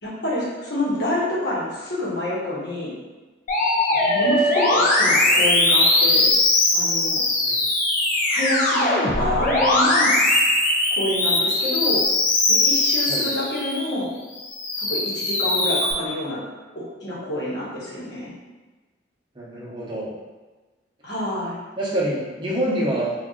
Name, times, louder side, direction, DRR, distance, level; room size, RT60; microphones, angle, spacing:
voice 1, 0.0-2.9 4.0-6.4 6.7-7.2 8.2-10.1 10.9-12.0 12.5-14.1 14.8-16.4 16.7-18.3 21.0-21.6, left 1 dB, 55° left, -6 dB, 1.0 m, -27 dB
Musical instrument, 3.5-13.9 14.4-15.9, left 2 dB, 40° left, 0.5 m, -20 dB
voice 2, 19.4-20.1 21.8-23.1, right 1 dB, 25° right, -6 dB, 0.7 m, -26 dB
2.6 x 2.3 x 3.7 m, 1.2 s
head